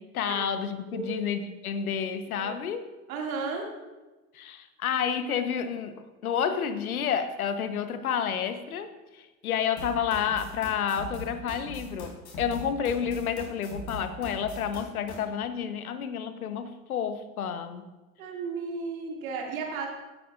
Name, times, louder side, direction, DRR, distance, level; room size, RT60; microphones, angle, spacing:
voice 1, 0.0-2.9 4.3-17.8, left 7 dB, 80° left, 11 dB, 1.0 m, -30 dB
voice 2, 3.1-3.7 18.2-19.9, right 4 dB, 70° right, 0 dB, 2.3 m, -34 dB
sound 1, 9.8-15.2, equal, 55° left, 4.0 m, -41 dB
16.5 x 9.1 x 2.5 m, 1.2 s
figure-of-eight pair, 70°, 43 cm